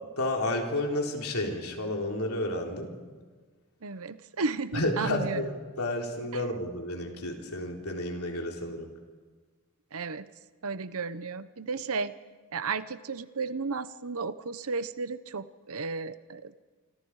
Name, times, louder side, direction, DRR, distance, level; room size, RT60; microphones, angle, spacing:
voice 1, 0.2-3.0 4.7-8.9, left 1 dB, 70° left, 1 dB, 3.8 m, -31 dB
voice 2, 3.8-5.4 6.3-6.4 9.9-10.3 10.6-12.1 12.5-16.6, right 4 dB, 70° right, 13 dB, 0.9 m, -34 dB
28.0 x 25.5 x 4.8 m, 1.4 s
head